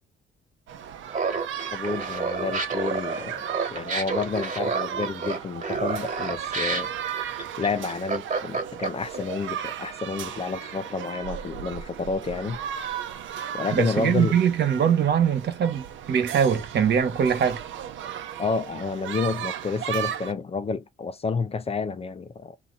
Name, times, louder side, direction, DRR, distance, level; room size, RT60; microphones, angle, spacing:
sound 1, 0.7-20.3, right 9 dB, 75° right, 0.7 m, -36 dB
Laughter, 1.1-9.2, right 4 dB, 35° right, 1.5 m, -29 dB
voice 1, 1.7-6.9 7.6-12.6 13.5-14.4 18.4-22.6, left 4 dB, 30° left, 0.5 m, -30 dB
voice 2, 13.7-17.6, right 8 dB, 60° right, 1.2 m, -22 dB
3.5 x 2.9 x 4.0 m
cardioid pair, 90°, 20 cm